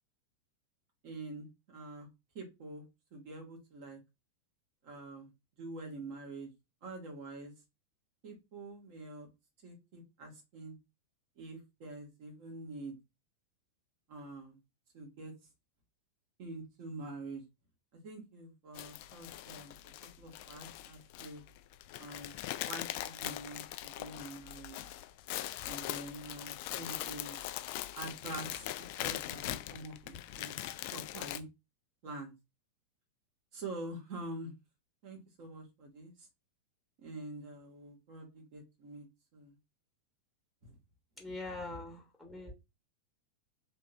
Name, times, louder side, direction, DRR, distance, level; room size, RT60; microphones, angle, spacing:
voice 1, 1.0-2.1 2.3-2.8 3.1-4.0 4.8-5.3 5.6-6.5 6.8-7.5 8.2-9.3 9.6-10.8 11.4-12.9 14.1-14.6 14.9-15.3 16.4-17.4 17.9-19.8 20.0-21.4 22.0-22.3 22.6-24.8 25.6-27.4 27.9-28.6 29.0-30.5 30.9-31.5 32.0-32.3 33.5-34.5 35.0-36.1 37.0-39.1 39.3-39.5 40.6-40.7, right 2 dB, 45° right, 1 dB, 1.6 m, -46 dB
sound 1, 18.7-31.4, left 14 dB, 45° left, 0.3 m, -41 dB
voice 2, 41.2-42.5, left 2 dB, ahead, 0 dB, 1.1 m, -43 dB
3.4 x 3.0 x 2.5 m, 0.24 s
figure-of-eight pair, 90°, 0 cm